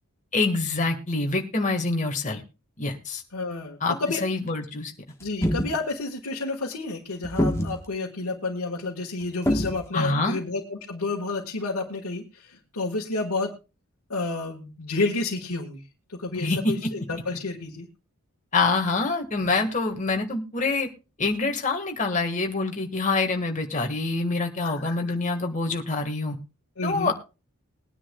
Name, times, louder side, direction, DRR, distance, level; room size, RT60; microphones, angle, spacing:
voice 1, 0.3-2.4 2.8-3.2 3.8-3.9 4.2-4.9 9.9-10.4 16.3-16.9 18.5-20.9 21.2-26.4 26.8-27.1, left 3 dB, 35° left, 3 dB, 1.6 m, -26 dB
voice 2, 3.3-4.2 5.2-13.5 14.1-15.8 16.1-17.9 24.6-25.1 26.8-27.1, left 3 dB, 75° left, -2 dB, 1.6 m, -30 dB
sound 1, 5.2-5.8 7.2-7.9 9.5-9.8, equal, 10° left, 1.2 m, -24 dB
21.5 x 10.0 x 2.3 m, 0.30 s
head